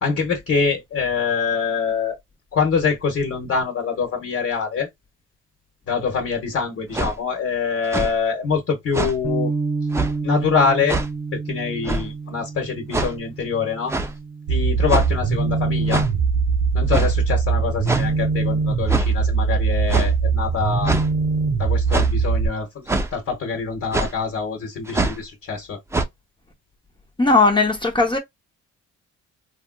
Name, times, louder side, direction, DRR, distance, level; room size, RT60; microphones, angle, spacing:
voice 1, 0.0-2.2 2.5-4.9 5.9-9.5 10.2-11.0 11.5-13.9 14.5-16.0 16.7-21.0 21.6-22.8 23.1-25.8, left 5 dB, 50° left, 1.1 m, -24 dB
sound 1, 6.9-7.1 7.8-8.1 8.9-9.2 9.9-10.1 10.9-11.1 11.9-12.1 12.9-13.1 13.9-14.1 14.9-15.2 15.9-16.1 16.9-17.1 17.9-18.1 18.9-19.1 19.9-20.1 20.9-21.1 21.9-22.2 22.9-23.1 23.9-24.1 24.9-25.2 25.9-26.1, right 2 dB, 10° right, 0.4 m, -23 dB
Bass guitar, 9.2-15.5, right 4 dB, 55° right, 0.9 m, -30 dB
sound 2, 14.5-22.5, right 5 dB, 85° right, 1.2 m, -21 dB
voice 2, 27.2-28.2, left 3 dB, 15° left, 0.7 m, -17 dB
3.4 x 2.5 x 2.2 m
cardioid pair, 90°, 30 cm